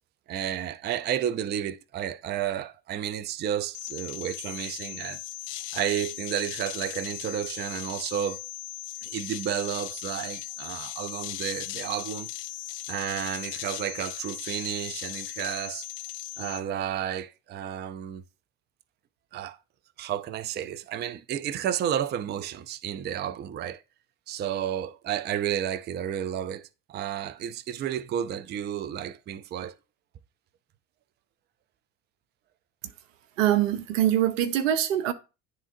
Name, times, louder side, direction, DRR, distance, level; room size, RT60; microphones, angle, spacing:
voice 1, 0.3-5.2 5.7-8.5 9.0-12.3 12.9-15.9 16.4-18.2 19.3-19.6 20.0-23.8 24.3-29.8, right 10 dB, 30° right, 0.4 m, -32 dB
sound 1, 3.7-16.6, left 16 dB, 60° left, 0.8 m, -38 dB
voice 2, 33.4-35.1, right 11 dB, 80° right, 0.8 m, -23 dB
10.5 x 3.7 x 2.6 m
hypercardioid pair, 75°, 38 cm